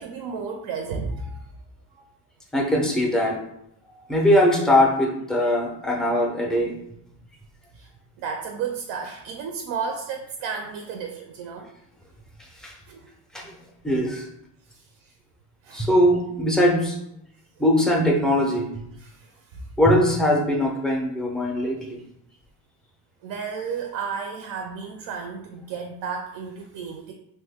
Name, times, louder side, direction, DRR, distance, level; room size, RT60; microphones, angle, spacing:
voice 1, 0.0-1.4 2.0-2.1 7.7-7.9 8.2-11.7 12.9-13.1 14.7-15.1 15.6-15.9 19.0-19.7 23.2-27.1, right 5 dB, 70° right, 3 dB, 0.5 m, -33 dB
voice 2, 2.5-3.4 4.1-6.7 12.6-12.7 13.3-13.5 13.8-14.3 15.7-17.0 17.6-18.7 19.8-21.8, left 1 dB, ahead, -1 dB, 0.3 m, -21 dB
2.9 x 2.2 x 3.4 m, 0.77 s
cardioid pair, 135°, 46 cm